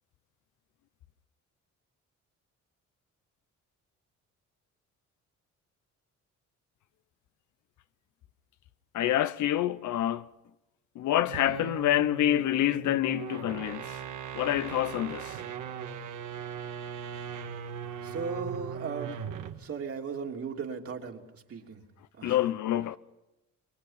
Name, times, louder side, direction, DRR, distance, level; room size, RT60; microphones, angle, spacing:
voice 1, 8.9-10.3 11.0-14.0 14.3-15.4 22.2-23.0, left 12 dB, 75° left, 0.9 m, -27 dB
sound 1, 11.2-19.6, right 8 dB, 80° right, 1.8 m, -39 dB
voice 2, 18.0-19.2 19.6-21.2 21.5-21.8 22.2-22.4, right 5 dB, 50° right, 3.1 m, -36 dB
27.0 x 22.5 x 5.8 m
cardioid pair, 90°, 30 cm